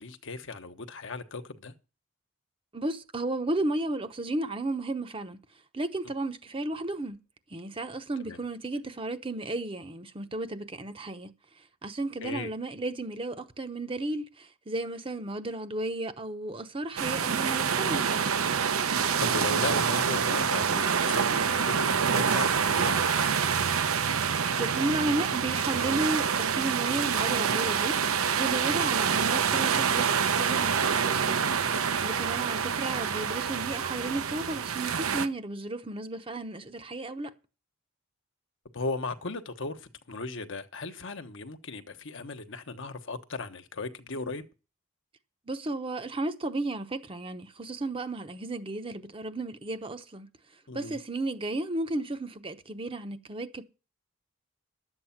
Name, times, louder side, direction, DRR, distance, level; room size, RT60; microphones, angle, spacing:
voice 1, 0.0-1.7 8.2-8.4 12.2-12.5 19.2-23.4 38.7-44.4 50.7-51.0, left 3 dB, 60° left, 1.2 m, -37 dB
voice 2, 2.7-5.4 5.7-7.2 7.5-11.3 11.8-18.3 24.5-28.0 28.4-31.5 32.0-37.3 45.5-50.3 50.7-53.6, right 2 dB, 25° right, 0.9 m, -33 dB
sound 1, 17.0-35.3, right 6 dB, 80° right, 0.8 m, -26 dB
11.5 x 8.1 x 5.8 m
head